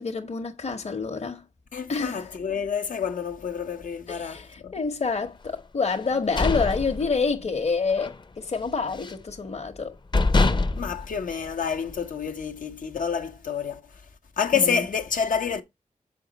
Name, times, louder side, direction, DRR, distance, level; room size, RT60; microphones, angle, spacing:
voice 1, 0.0-1.4 1.9-2.3 4.1-9.9 14.5-14.8, left 4 dB, 50° left, 1.1 m, -28 dB
voice 2, 1.7-4.7 10.8-14.0 14.4-15.6, left 6 dB, 90° left, 1.1 m, -28 dB
sound 1, 6.0-7.6 7.9-8.2 8.5-9.3 9.8-9.9 10.1-12.0, left 3 dB, 35° left, 0.6 m, -25 dB
6.4 x 4.9 x 4.0 m
cardioid pair, 55°, 13 cm